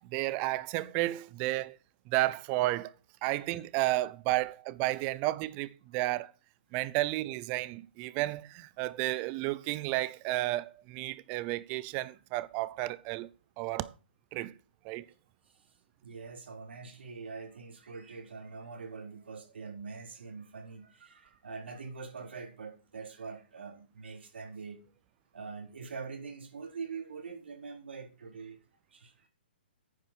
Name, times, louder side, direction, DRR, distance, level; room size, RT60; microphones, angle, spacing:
voice 1, 0.1-1.8 2.1-2.9 3.2-6.3 6.7-13.3 13.6-13.9 14.3-14.5 14.8-15.0, right 18 dB, 25° right, 0.5 m, -32 dB
voice 2, 16.0-24.8 25.3-28.6 28.9-29.3, right 5 dB, 80° right, 3.9 m, -44 dB
9.6 x 9.1 x 4.6 m
hypercardioid pair, 160°, 6 cm